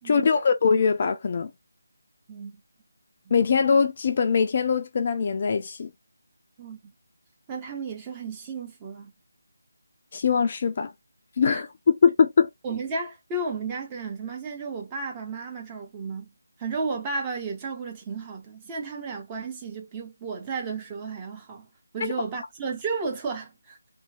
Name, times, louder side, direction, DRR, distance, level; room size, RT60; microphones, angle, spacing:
voice 1, 0.0-1.5 3.3-5.9 10.1-10.9 11.4-11.7 12.0-12.5 22.0-22.1, left 5 dB, 35° left, 0.3 m, -22 dB
voice 2, 2.3-2.6 6.6-6.8 7.5-9.1 11.5-11.6 12.6-16.3 16.6-21.7 21.9-23.8, right 4 dB, 15° right, 0.6 m, -33 dB
2.7 x 2.2 x 2.3 m
figure-of-eight pair, 160°, 0 cm